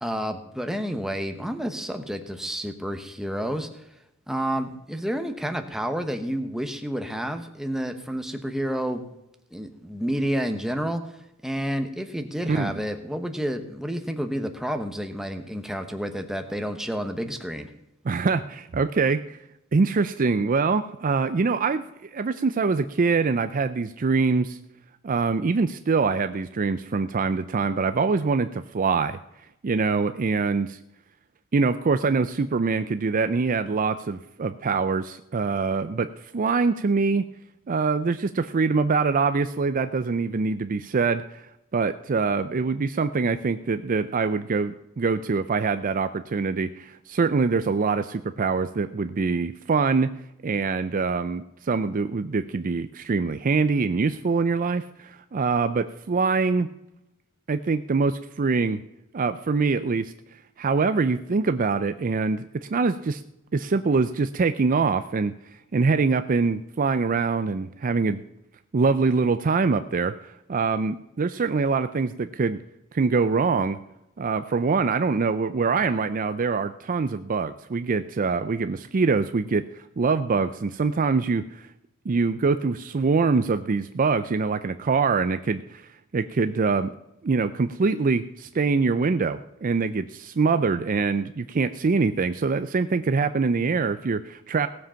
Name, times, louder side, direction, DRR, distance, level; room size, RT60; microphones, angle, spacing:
voice 1, 0.0-3.7 4.3-9.0 9.5-11.0 11.4-17.7, equal, ahead, 6 dB, 1.1 m, -30 dB
voice 2, 12.5-12.8 18.0-19.4 19.7-24.6 25.0-29.2 29.6-30.8 31.5-37.2 37.7-41.5 41.7-50.1 50.4-56.7 57.5-58.8 59.1-60.1 60.6-63.2 63.5-65.3 65.7-68.2 68.7-72.6 72.9-73.8 74.2-81.7 82.1-86.9 87.2-94.7, right 4 dB, 40° right, 11 dB, 0.4 m, -24 dB
17.5 x 7.5 x 5.7 m, 0.87 s
head